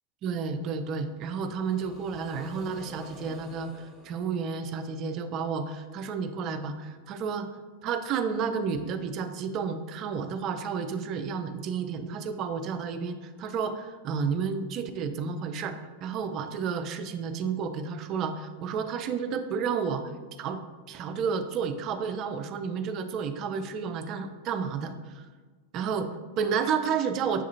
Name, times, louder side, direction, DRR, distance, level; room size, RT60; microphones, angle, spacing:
voice 1, 0.2-7.5 7.8-20.1 20.4-20.6 20.9-25.2 25.7-26.1 26.4-27.4, right 6 dB, 35° right, 8 dB, 0.3 m, -31 dB
sound 1, 1.2-5.2, left 1 dB, 10° left, 0.7 m, -50 dB
6.9 x 2.4 x 2.7 m, 1.4 s
figure-of-eight pair, 90°, 0 cm